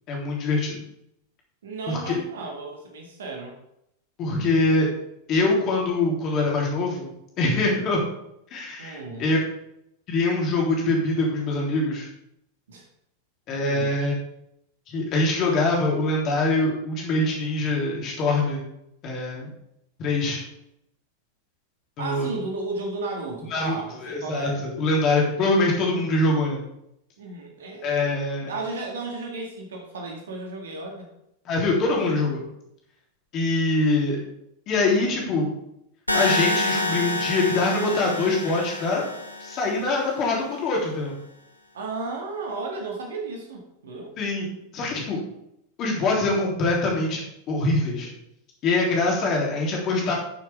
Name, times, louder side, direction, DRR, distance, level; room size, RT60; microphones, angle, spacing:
voice 1, 0.1-0.8 1.9-2.2 4.2-4.9 5.3-7.1 7.4-8.0 8.5-9.4 10.1-12.1 13.5-14.1 14.9-18.6 19.0-19.5 20.0-20.4 22.0-22.3 23.5-23.8 24.0-26.6 27.8-28.5 31.5-32.4 33.3-34.2 34.7-35.5 36.1-39.0 39.4-41.1 44.2-44.5 44.7-45.2 45.8-48.1 48.6-50.1, left 2 dB, 35° left, -2 dB, 3.5 m, -24 dB
voice 2, 1.6-3.5 8.8-9.3 12.7-12.8 13.5-14.0 22.0-24.6 27.2-28.1 28.4-31.1 41.7-44.1, right 3 dB, 65° right, 1 dB, 2.0 m, -34 dB
sound 1, 36.1-40.1, left 2 dB, 85° left, 1.1 m, -27 dB
12.0 x 6.9 x 3.6 m, 0.79 s
figure-of-eight pair, 90°, 0 cm